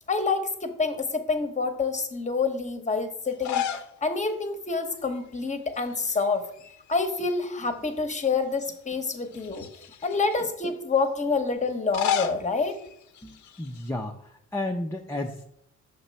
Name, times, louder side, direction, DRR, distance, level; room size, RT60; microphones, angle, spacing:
voice 1, 0.1-3.6 4.0-6.4 6.9-9.7 10.0-12.8, left 4 dB, 25° left, 7 dB, 0.9 m, -27 dB
sound 1, 3.3-3.9 4.3-4.4 5.7-6.2 6.5-7.7 8.3-8.4 9.3-10.4 11.7-13.9, left 8 dB, 70° left, 0.6 m, -33 dB
voice 2, 13.2-15.5, left 1 dB, 10° left, 0 dB, 0.5 m, -33 dB
6.7 x 3.0 x 5.5 m, 0.74 s
cardioid pair, 90°, 30 cm